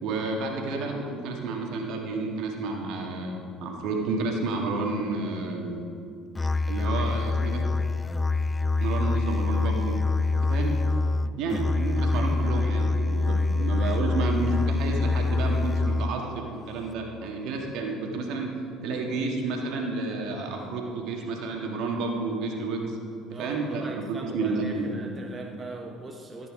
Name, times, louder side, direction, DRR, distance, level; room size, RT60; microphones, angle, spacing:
voice 1, 0.0-5.9 6.7-7.7 8.8-9.9 10.4-10.8 11.4-18.5 18.8-23.0 23.4-24.9, right 3 dB, 60° right, 1 dB, 2.0 m, -30 dB
Musical instrument, 6.4-16.3, left 3 dB, 20° left, 0.4 m, -25 dB
voice 2, 23.3-26.5, right 2 dB, 25° right, 2 dB, 1.1 m, -40 dB
14.0 x 8.6 x 5.0 m, 2.4 s
hypercardioid pair, 65°, 0 cm